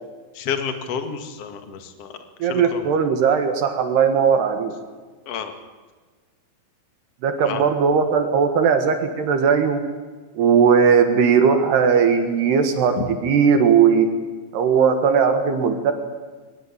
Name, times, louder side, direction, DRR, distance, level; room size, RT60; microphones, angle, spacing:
voice 1, 0.3-2.2 2.5-2.9 5.2-5.5 7.4-7.6 13.0-13.1, left 7 dB, 50° left, 7 dB, 1.8 m, -29 dB
voice 2, 2.4-4.7 7.2-9.8 10.3-14.1 14.5-15.9, right 6 dB, 60° right, 7 dB, 3.3 m, -18 dB
23.0 x 20.0 x 8.8 m, 1.4 s
omnidirectional pair, 6.0 m